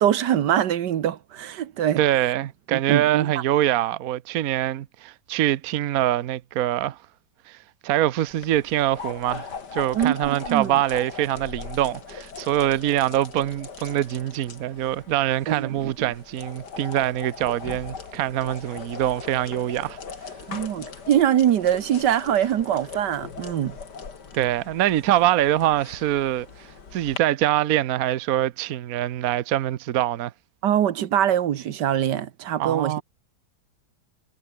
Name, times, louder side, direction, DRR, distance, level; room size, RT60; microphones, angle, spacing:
voice 1, 0.0-2.0 2.7-3.3 9.9-10.7 15.5-16.1 20.5-23.8 30.6-33.0, right 10 dB, 80° right, 1.6 m, -23 dB
voice 2, 2.0-7.0 7.5-7.6 7.8-20.0 24.3-30.3 32.6-33.0, right 13 dB, 60° right, 1.1 m, -24 dB
sound 1, 8.3-27.2, left 5 dB, 75° left, 3.0 m, -40 dB
omnidirectional pair, 1.8 m